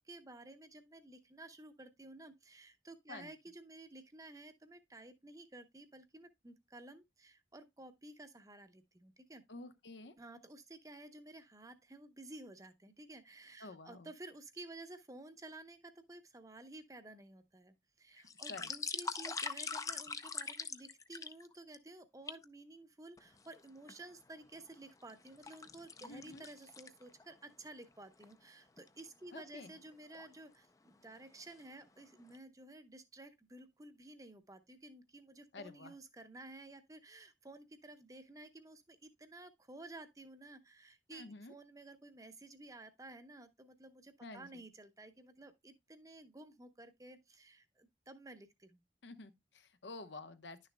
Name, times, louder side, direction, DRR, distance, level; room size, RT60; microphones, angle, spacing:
voice 1, 0.0-9.4 10.2-48.8, right 2 dB, 20° right, 0.8 m, -53 dB
voice 2, 9.5-10.2 13.6-14.1 18.5-18.7 26.1-26.4 29.3-29.7 35.5-35.9 41.1-41.5 44.2-44.6 49.0-50.6, left 3 dB, 85° left, 0.9 m, -50 dB
sound 1, 18.2-21.8 22.3-22.4 23.2-24.0 24.5-27.3 27.7-27.8 28.2-28.3 28.8-29.0 29.9-30.3 30.9-31.1 31.4-32.0 32.3-32.4, left 5 dB, 20° left, 0.5 m, -43 dB
11.0 x 6.6 x 2.2 m
head